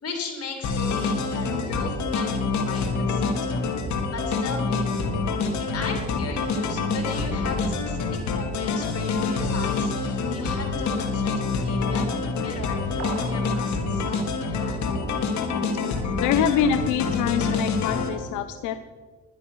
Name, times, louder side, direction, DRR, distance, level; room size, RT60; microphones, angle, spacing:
voice 1, 0.0-3.6 4.1-12.0 12.3-14.8, left 3 dB, 50° left, 3 dB, 3.7 m, -37 dB
sound 1, 0.6-18.1, left 4 dB, 65° left, 1.8 m, -26 dB
sound 2, 13.0-13.6, right 10 dB, 60° right, 0.7 m, -36 dB
voice 2, 16.2-18.8, left 8 dB, 90° left, 10 dB, 0.6 m, -25 dB
11.0 x 11.0 x 6.2 m, 1.5 s
cardioid pair, 90°, 30 cm